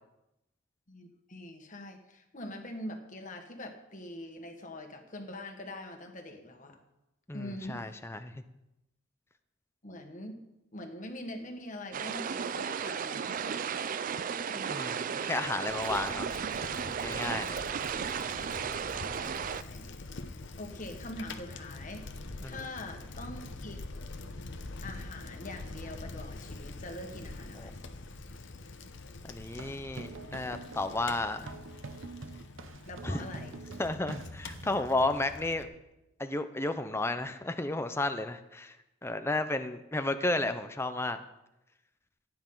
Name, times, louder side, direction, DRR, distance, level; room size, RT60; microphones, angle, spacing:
voice 1, 0.9-6.8 7.3-7.9 9.8-10.4 10.7-13.8 14.5-15.1 18.1-18.2 19.2-19.9 20.6-22.1 22.4-23.8 24.8-27.8 32.8-33.6, left 1 dB, 40° left, 4 dB, 1.5 m, -43 dB
voice 2, 7.3-8.3 14.7-16.3 17.0-17.6 22.4-22.6 27.6-27.7 29.2-31.5 33.0-33.2 33.8-35.7 36.2-38.7 39.0-41.2, left 2 dB, 10° left, 9 dB, 0.6 m, -32 dB
sound 1, 11.9-19.6, right 7 dB, 40° right, 0.4 m, -34 dB
Bicycle, 15.7-35.6, left 2 dB, 65° left, 0.9 m, -45 dB
sound 2, 29.4-34.8, right 3 dB, 70° right, 0.8 m, -46 dB
15.5 x 9.5 x 3.9 m, 0.91 s
head